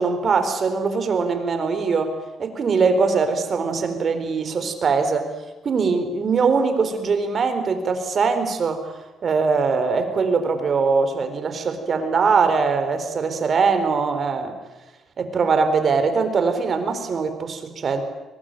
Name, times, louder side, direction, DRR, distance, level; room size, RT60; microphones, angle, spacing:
voice 1, 0.0-5.3 5.6-14.6 15.2-18.0, right 5 dB, 50° right, 8 dB, 4.0 m, -22 dB
22.5 x 20.0 x 9.0 m, 1.1 s
cardioid pair, 90°, 0 cm